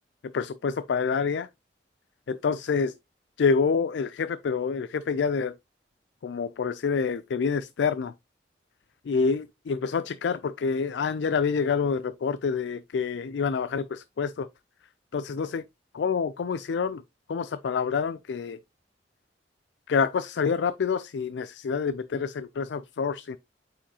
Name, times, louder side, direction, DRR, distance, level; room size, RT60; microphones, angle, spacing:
voice 1, 0.3-1.5 2.3-2.9 3.4-5.5 6.2-8.1 9.1-14.5 15.1-15.6 15.9-17.0 17.3-18.6 19.9-23.4, left 5 dB, 85° left, 0.4 m, -27 dB
8.7 x 4.8 x 2.8 m
head